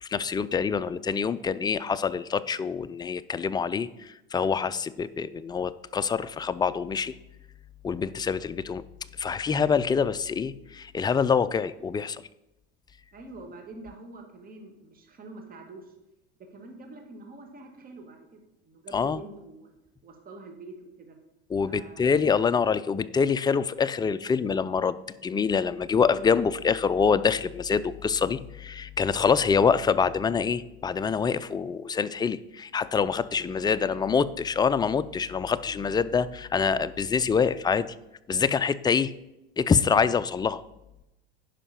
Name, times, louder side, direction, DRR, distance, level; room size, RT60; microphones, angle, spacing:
voice 1, 0.0-7.1 7.8-8.8 9.2-12.2 18.9-19.2 21.5-37.9 38.3-39.1 39.6-40.6, left 6 dB, 15° left, 14 dB, 0.4 m, -25 dB
voice 2, 13.1-15.9 16.4-19.7 20.0-21.2 21.7-22.4 33.3-34.1, right 2 dB, 30° right, 4 dB, 1.9 m, -46 dB
10.0 x 5.4 x 5.8 m, 0.91 s
supercardioid pair, 100°, 29 cm